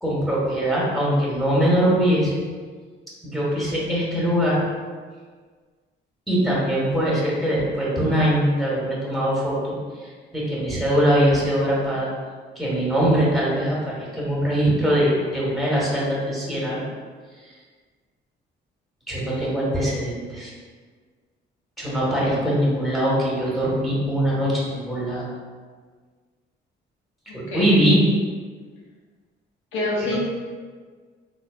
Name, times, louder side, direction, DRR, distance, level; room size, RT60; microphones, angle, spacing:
voice 1, 0.0-2.4 3.2-4.6 6.3-12.1 12.5-16.8 17.4-17.5 19.1-20.5 21.8-25.3 27.3-28.0 30.1-30.2, equal, ahead, -6 dB, 1.4 m, -22 dB
voice 2, 27.3-27.9 29.7-30.2, left 2 dB, 80° left, -5 dB, 1.1 m, -27 dB
3.9 x 3.2 x 2.4 m, 1.5 s
cardioid pair, 90°, 20 cm